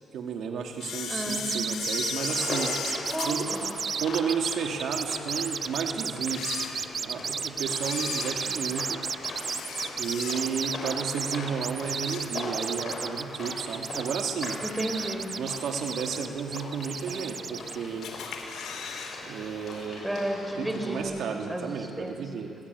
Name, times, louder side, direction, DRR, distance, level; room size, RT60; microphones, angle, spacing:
voice 1, 0.1-2.8 3.3-3.5 4.0-6.6 7.0-9.0 10.0-14.6 15.4-18.1 19.2-20.1 20.6-22.5, right 6 dB, 70° right, 3 dB, 2.0 m, -32 dB
Camera, 0.8-4.4 4.9-5.0 5.7-5.8 6.2-7.2 7.7-10.7 11.1-11.4 11.7-12.8 13.1-13.2 14.2-14.3 14.8-15.2 15.7-15.8 15.9-16.0 16.2-16.3 17.1-17.6 18.0-19.2 19.4-19.5 19.8-19.9, left 6 dB, 75° left, 3.5 m, -36 dB
voice 2, 1.1-1.8 3.1-3.6 14.6-15.3 20.0-21.2 21.5-22.2, right 1 dB, 10° right, 4 dB, 3.7 m, -33 dB
sound 1, 1.3-17.8, right 6 dB, 45° right, 0.6 m, -33 dB
sound 2, 2.2-21.0, left 2 dB, 45° left, 7.2 m, -40 dB
23.0 x 17.5 x 9.2 m, 2.6 s
cardioid pair, 90°, 0 cm